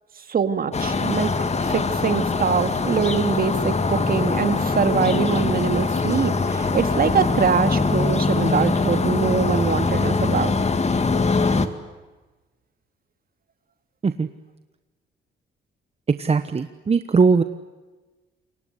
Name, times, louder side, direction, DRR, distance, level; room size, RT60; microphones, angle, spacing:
voice 1, 0.3-1.3 1.6-10.6, right 6 dB, 45° right, 9 dB, 2.4 m, -23 dB
sound 1, 0.7-11.7, left 4 dB, 35° left, 2.4 m, -22 dB
voice 2, 16.2-17.4, right 5 dB, 30° right, 10 dB, 1.2 m, -19 dB
28.5 x 24.0 x 8.2 m, 1.2 s
cardioid pair, 90°, 20 cm